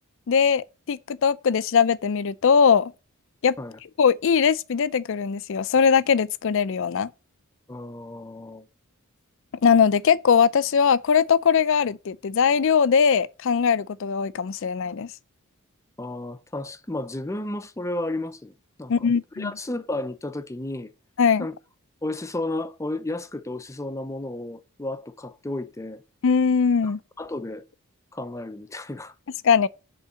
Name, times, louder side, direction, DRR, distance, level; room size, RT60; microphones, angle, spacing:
voice 1, 0.3-2.9 3.4-3.6 4.0-7.1 9.6-15.1 18.9-19.5 21.2-21.5 26.2-27.0 29.4-29.7, left 6 dB, 65° left, 0.4 m, -20 dB
voice 2, 7.7-8.7 16.0-18.5 18.8-19.1 19.3-20.9 21.4-21.6 22.0-26.0 26.8-27.6 28.1-29.1, left 2 dB, 15° left, 0.6 m, -33 dB
8.2 x 3.9 x 6.9 m
head